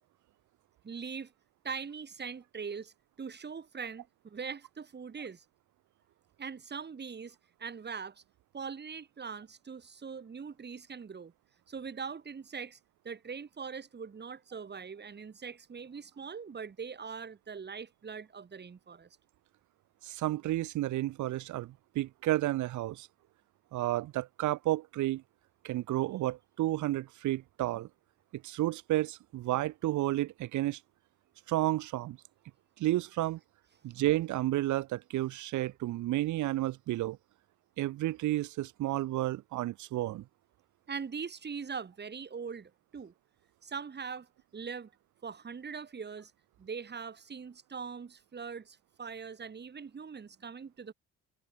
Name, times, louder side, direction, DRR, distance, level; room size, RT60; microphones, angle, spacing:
voice 1, 0.8-1.3 1.6-5.4 6.4-8.2 8.5-11.3 11.7-12.8 13.0-19.1 40.9-43.1 43.6-44.9 45.2-46.3 46.6-50.9, right 6 dB, 35° right, 7.1 m, -42 dB
voice 2, 20.0-23.1 23.7-25.2 25.6-27.9 28.3-30.8 31.5-32.2 32.8-33.4 33.8-37.2 37.8-40.2, right 15 dB, 70° right, 1.7 m, -31 dB
cardioid pair, 95°, 30 cm